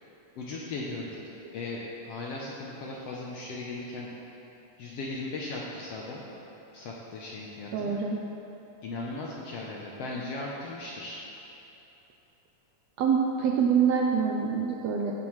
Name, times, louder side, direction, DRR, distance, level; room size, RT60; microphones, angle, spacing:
voice 1, 0.4-1.1 1.5-4.1 4.8-6.2 6.7-8.0 8.8-11.2, left 2 dB, 75° left, -3 dB, 1.4 m, -37 dB
voice 2, 7.7-8.2 13.0-15.1, right 6 dB, 80° right, 0 dB, 1.5 m, -25 dB
16.5 x 7.2 x 3.2 m, 2.9 s
omnidirectional pair, 3.7 m